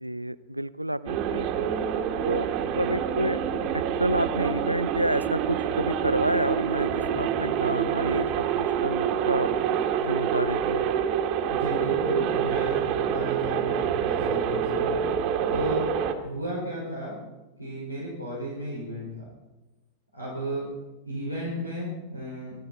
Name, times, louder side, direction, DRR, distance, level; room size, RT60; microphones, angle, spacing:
voice 1, 0.0-1.7 2.2-3.4 3.7-9.5 10.0-10.9, right 1 dB, 85° right, 17 dB, 0.5 m, -29 dB
sound 1, 1.1-16.1, right 8 dB, 40° right, 1.7 m, -27 dB
voice 2, 11.5-15.0 15.5-15.9 16.2-17.2 17.6-19.3 20.1-20.7 21.0-22.6, equal, 85° left, -5 dB, 5.6 m, -33 dB
26.0 x 11.5 x 4.5 m, 1.1 s
figure-of-eight pair, 90°, 0 cm